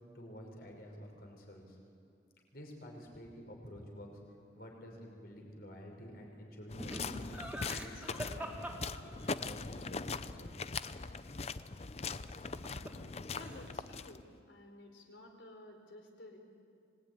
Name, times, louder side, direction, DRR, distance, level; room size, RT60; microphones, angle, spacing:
voice 1, 0.1-1.8 2.5-4.2 4.5-7.3 7.6-8.7 9.0-11.0, equal, 55° left, 1 dB, 5.7 m, -50 dB
sound 1, 6.7-14.4, left 4 dB, 35° left, 0.6 m, -41 dB
Laughter, 6.8-9.5 12.3-13.1 13.3-13.9, equal, 5° right, 2.7 m, -44 dB
voice 2, 13.3-16.4, left 1 dB, 85° left, 3 dB, 4.4 m, -53 dB
26.0 x 20.0 x 9.9 m, 2.4 s
head